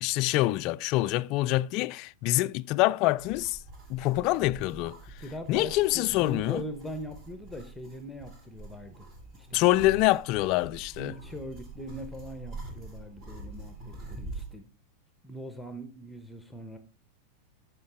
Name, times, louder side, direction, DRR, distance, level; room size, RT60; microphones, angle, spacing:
voice 1, 0.0-3.6 3.9-5.0 5.5-6.6 9.5-11.1 14.2-14.3, left 17 dB, 40° left, 0.3 m, -25 dB
sound 1, 3.2-14.6, right 2 dB, 35° right, 3.1 m, -45 dB
voice 2, 5.2-9.1 9.3-9.8 11.0-14.7 15.2-16.8, equal, 5° left, 1.0 m, -41 dB
13.5 x 5.0 x 3.8 m
figure-of-eight pair, 90°, 0 cm